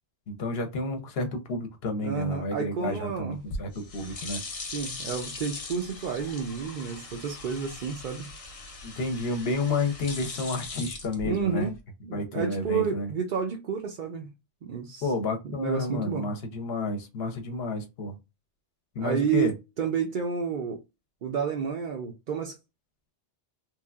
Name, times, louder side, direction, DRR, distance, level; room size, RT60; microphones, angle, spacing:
voice 1, 0.3-4.4 8.8-11.7 12.1-13.1 15.0-18.2 18.9-19.5, left 2 dB, 65° left, 0.9 m, -30 dB
voice 2, 2.0-3.4 4.6-8.3 11.2-11.8 12.0-14.3 14.6-15.1 15.4-16.3 19.0-20.8 21.2-22.6, right 6 dB, 55° right, 0.6 m, -30 dB
sound 1, 3.3-11.8, left 3 dB, 40° left, 0.6 m, -40 dB
3.1 x 2.3 x 2.3 m
omnidirectional pair, 1.2 m